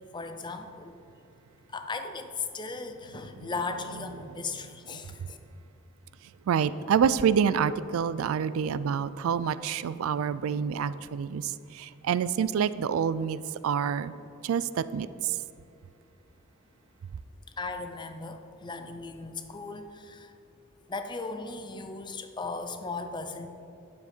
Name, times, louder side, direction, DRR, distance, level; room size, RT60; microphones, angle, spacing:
voice 1, 0.1-0.9 1.7-5.4 17.6-20.3 20.9-23.5, left 3 dB, 20° left, 0.5 m, -37 dB
voice 2, 6.5-11.4 12.1-14.1 14.4-14.6 14.9-15.1, right 7 dB, 75° right, 0.3 m, -27 dB
9.6 x 7.1 x 4.4 m
head